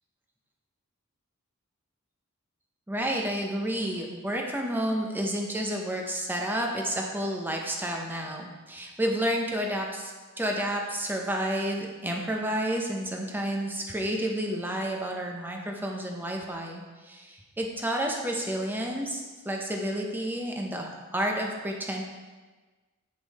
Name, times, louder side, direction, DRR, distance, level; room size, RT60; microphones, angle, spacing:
voice 1, 2.9-22.0, equal, 10° right, 0 dB, 0.8 m, -30 dB
8.2 x 5.4 x 4.2 m, 1.3 s
head